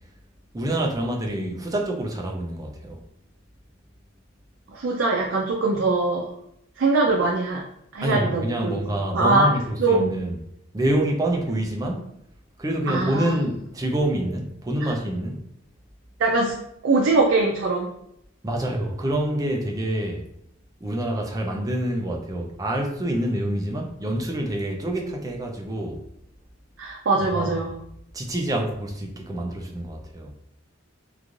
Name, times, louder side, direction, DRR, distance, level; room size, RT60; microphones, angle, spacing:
voice 1, 0.5-3.0 8.0-10.4 10.7-12.1 12.6-15.4 18.4-20.2 20.8-26.0 27.2-27.6 28.1-30.3, right 1 dB, 20° right, 1 dB, 0.4 m, -26 dB
voice 2, 4.7-6.3 6.8-7.6 7.9-9.5 9.8-10.1 12.9-13.5 14.8-14.9 16.2-16.5 16.8-17.9 26.8-27.7, right 3 dB, 75° right, 0 dB, 0.4 m, -22 dB
3.1 x 2.5 x 2.4 m, 0.75 s
head